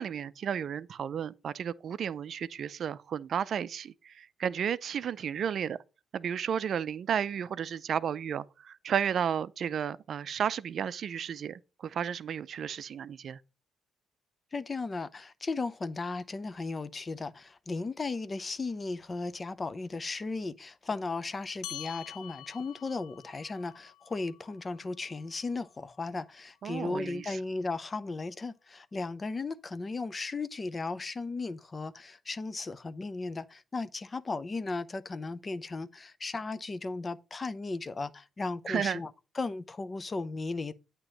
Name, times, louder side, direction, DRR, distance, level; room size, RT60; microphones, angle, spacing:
voice 1, 0.0-5.8 6.1-13.4 26.6-27.4 38.7-39.0, right 8 dB, 60° right, 0.4 m, -33 dB
voice 2, 14.5-40.7, left 3 dB, 30° left, 0.6 m, -36 dB
sound 1, 21.6-26.4, left 11 dB, 75° left, 0.6 m, -48 dB
8.8 x 2.9 x 6.2 m
cardioid pair, 90°, 0 cm